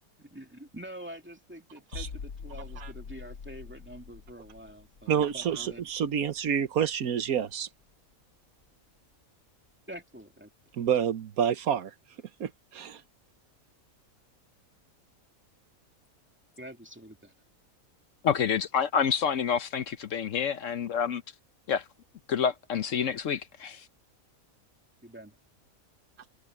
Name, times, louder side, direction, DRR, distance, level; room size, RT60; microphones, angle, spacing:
voice 1, 0.2-5.9 9.9-10.5 16.6-17.3 25.0-25.3, right 1 dB, 10° right, 2.6 m, -46 dB
sound 1, 1.9-7.6 7.9-8.1, left 5 dB, 85° left, 1.7 m, -45 dB
voice 2, 5.1-7.7 10.7-11.9 12.4-13.0, right 8 dB, 80° right, 1.4 m, -28 dB
voice 3, 18.2-21.2 21.7-21.8 22.3-23.9, left 7 dB, 65° left, 1.1 m, -28 dB
omnidirectional pair, 1.5 m